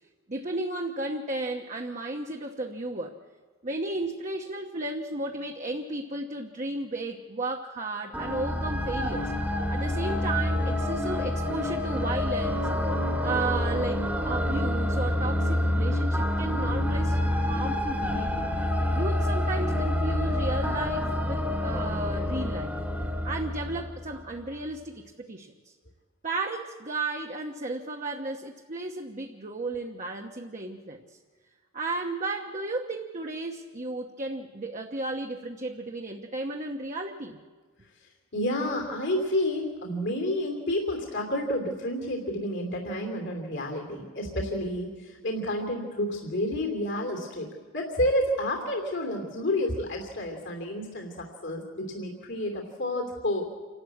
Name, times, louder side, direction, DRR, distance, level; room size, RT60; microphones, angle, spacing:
voice 1, 0.3-3.2 3.6-9.3 9.7-12.7 13.2-18.5 18.9-22.8 23.2-25.7 26.2-31.0 31.7-37.4, right 2 dB, 40° right, 2 dB, 1.1 m, -34 dB
sound 1, 8.1-24.3, left 1 dB, 10° right, 1.6 m, -27 dB
voice 2, 38.3-47.5 47.7-53.4, left 1 dB, 65° left, 2 dB, 3.0 m, -30 dB
28.0 x 13.0 x 8.4 m, 1.4 s
head